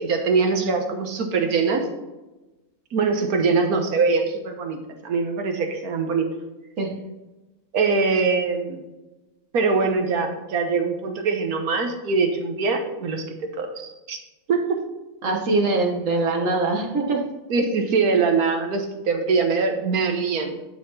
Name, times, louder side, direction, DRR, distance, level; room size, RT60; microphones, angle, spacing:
voice 1, 0.0-1.9 2.9-4.8 5.0-6.3 7.7-8.8 9.5-13.3 13.5-14.2 14.5-14.8 17.5-20.5, right 4 dB, 75° right, 4 dB, 1.4 m, -23 dB
voice 2, 15.2-17.2, right 3 dB, 55° right, 2 dB, 1.5 m, -22 dB
11.5 x 4.2 x 4.1 m, 1.1 s
omnidirectional pair, 1.6 m